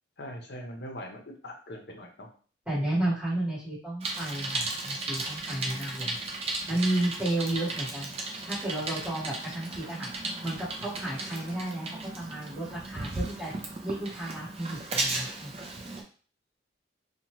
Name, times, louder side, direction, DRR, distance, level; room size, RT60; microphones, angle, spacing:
voice 1, 0.2-2.3, equal, 60° left, 2 dB, 0.7 m, -41 dB
voice 2, 2.6-6.2 6.7-8.2 8.4-10.1 10.4-11.9 12.1-13.5 13.8-15.5, right 1 dB, 10° right, -11 dB, 1.5 m, -32 dB
Bicycle, 4.0-16.0, right 2 dB, 30° right, 0.4 m, -35 dB
2.8 x 2.2 x 3.0 m, 0.40 s
head